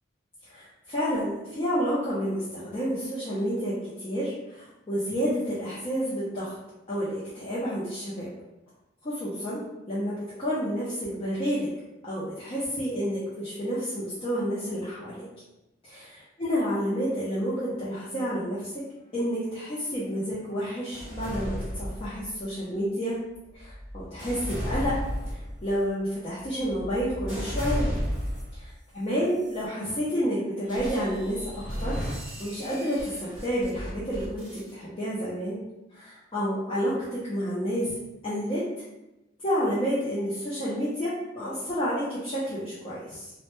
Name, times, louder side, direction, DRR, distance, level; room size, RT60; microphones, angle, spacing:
voice 1, 0.5-6.5 6.9-8.3 9.0-11.7 12.0-15.3 15.8-18.8 19.1-23.2 23.5-25.0 25.3-27.9 28.6-31.4 31.8-32.0 32.4-35.6 35.9-37.9 38.2-38.8 39.4-43.3, equal, 30° left, -8 dB, 0.4 m, -30 dB
sound 1, 20.9-22.5 23.2-28.7 29.3-29.6 30.7-34.7, equal, 5° right, 0.9 m, -34 dB
2.1 x 2.1 x 2.9 m, 0.98 s
head